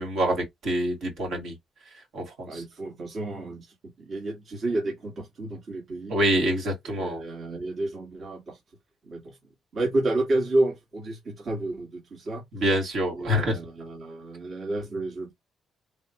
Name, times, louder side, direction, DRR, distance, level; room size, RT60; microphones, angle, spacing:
voice 1, 0.0-1.5 2.1-2.6 6.1-7.2 12.5-13.6, equal, 70° right, 2.1 m, -26 dB
voice 2, 2.5-6.2 6.9-8.6 9.0-9.4 9.7-12.4 13.1-15.3, right 2 dB, 50° right, 1.7 m, -30 dB
3.6 x 2.9 x 2.9 m
cardioid pair, 90°, 0 cm